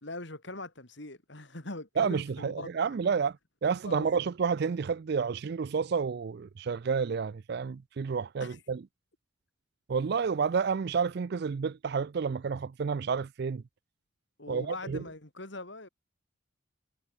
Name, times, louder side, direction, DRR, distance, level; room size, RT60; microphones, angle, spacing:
voice 1, 0.0-2.9 3.8-4.1 8.4-8.6 14.4-15.9, left 2 dB, 55° left, 2.9 m, -42 dB
voice 2, 2.0-3.4 3.6-8.8 9.9-13.6 14.5-15.0, right 5 dB, 50° right, 0.4 m, -30 dB
head